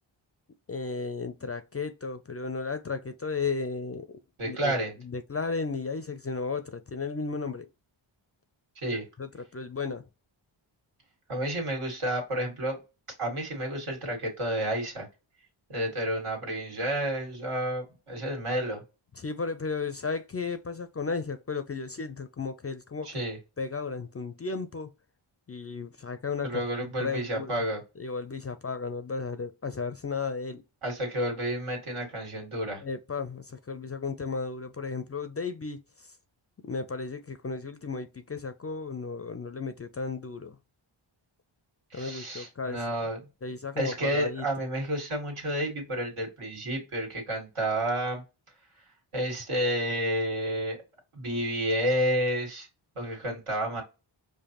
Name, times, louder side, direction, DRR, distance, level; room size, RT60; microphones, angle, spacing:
voice 1, 0.7-4.1 4.4-4.7 5.0-7.7 9.2-10.0 19.2-23.3 23.6-24.9 25.5-27.6 28.0-30.6 32.8-36.2 36.6-40.6 41.9-42.9 43.4-44.5, left 4 dB, 30° left, 0.4 m, -34 dB
voice 2, 4.4-4.9 8.8-9.1 11.3-12.8 13.2-15.1 15.7-18.8 23.0-23.4 26.4-27.8 30.8-32.8 41.9-43.2 43.8-48.2 49.1-50.8 51.1-52.7 53.0-53.8, right 1 dB, 80° right, 1.9 m, -30 dB
5.1 x 2.1 x 2.9 m
wide cardioid pair, 90°, 50 cm